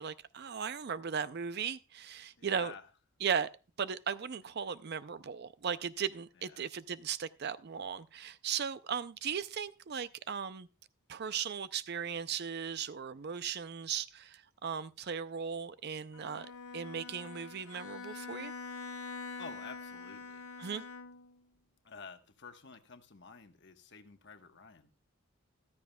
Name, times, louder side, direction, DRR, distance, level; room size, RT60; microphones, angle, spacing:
voice 1, 0.0-2.7 3.2-3.5 3.8-10.7 11.1-16.5 16.7-18.5 20.6-20.8, right 7 dB, 50° right, 0.4 m, -37 dB
voice 2, 2.4-2.9 6.3-6.6 19.4-20.4 21.8-24.9, left 4 dB, 55° left, 1.2 m, -50 dB
Bowed string instrument, 16.1-21.4, left 4 dB, 85° left, 1.3 m, -45 dB
14.5 x 13.0 x 2.3 m
head